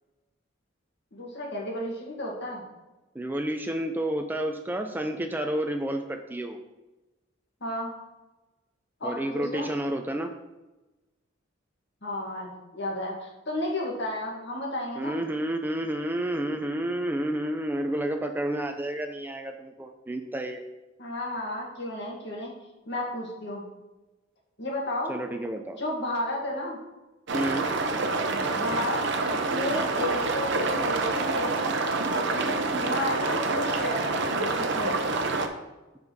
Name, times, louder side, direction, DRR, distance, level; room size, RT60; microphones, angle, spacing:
voice 1, 1.1-2.6 7.6-7.9 9.0-9.7 12.0-15.2 21.0-22.5 22.9-23.6 24.6-25.1 25.8-26.8 28.5-31.6 32.1-35.0, left 1 dB, 60° left, -2 dB, 2.0 m, -33 dB
voice 2, 3.1-6.6 9.0-10.3 15.0-20.6 25.1-25.8 27.3-27.7, right 1 dB, 10° right, 5 dB, 0.4 m, -30 dB
sound 1, 27.3-35.5, right 3 dB, 60° right, 0.8 m, -27 dB
7.5 x 5.2 x 4.7 m, 1.1 s
head